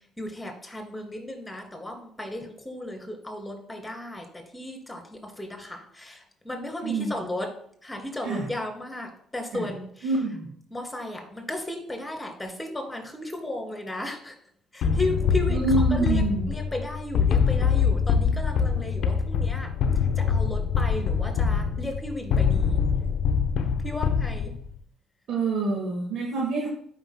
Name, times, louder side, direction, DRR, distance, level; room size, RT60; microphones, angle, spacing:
voice 1, 0.2-7.5 7.8-10.1 10.7-14.3 14.7-19.7 20.2-22.8 23.8-24.5, left 1 dB, 10° left, 3 dB, 2.7 m, -35 dB
voice 2, 10.0-10.5 15.5-16.5 25.3-26.7, right 3 dB, 60° right, -1 dB, 1.6 m, -26 dB
sound 1, 14.8-24.8, left 6 dB, 65° left, 0.8 m, -24 dB
14.0 x 5.7 x 2.2 m, 0.63 s
hypercardioid pair, 55°, 0 cm